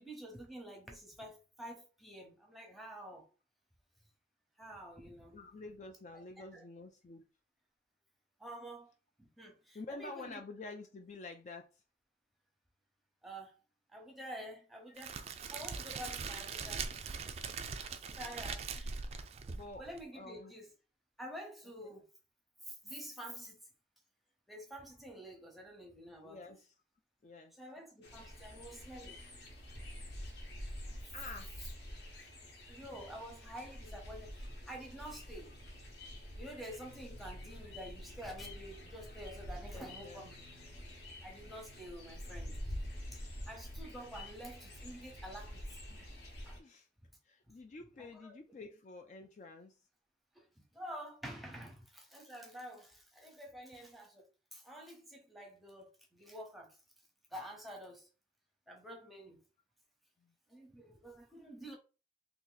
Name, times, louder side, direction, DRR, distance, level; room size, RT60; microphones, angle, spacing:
voice 1, 0.0-3.3 4.6-5.4 6.1-6.2 6.5-6.6 8.4-8.9 9.2-10.4 13.2-13.6 13.9-16.8 18.1-19.0 19.8-20.7 21.2-22.1 22.6-23.6 24.5-26.4 27.6-29.2 32.2-32.3 32.7-35.5 36.4-40.3 41.2-42.6 43.1-45.8 46.5-46.6 48.0-48.4 50.3-56.8 57.3-58.1 58.7-59.4 60.5-61.8, equal, ahead, 0.8 m, -49 dB
voice 2, 5.3-7.2 9.7-11.8 19.5-19.8 20.1-20.5 21.8-22.0 26.2-26.7 27.2-27.6 31.1-31.6 39.6-40.2 45.9-46.0 46.6-46.9 47.2-49.8 60.2-60.3, left 3 dB, 40° left, 0.3 m, -49 dB
Crackle, 15.0-20.0, right 5 dB, 35° right, 0.3 m, -41 dB
sound 1, 28.0-46.6, equal, 65° left, 1.0 m, -47 dB
2.8 x 2.6 x 3.9 m
head